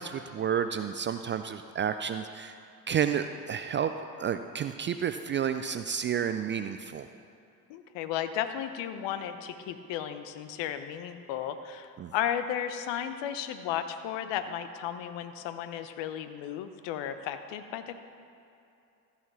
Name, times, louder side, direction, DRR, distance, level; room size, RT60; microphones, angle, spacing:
voice 1, 0.0-2.5 2.9-3.9 4.2-7.1 12.0-12.1, right 8 dB, 25° right, 9 dB, 0.3 m, -31 dB
voice 2, 7.7-17.9, left 10 dB, 60° left, 10 dB, 0.9 m, -34 dB
15.0 x 5.9 x 5.9 m, 2.7 s
hypercardioid pair, 55°, 49 cm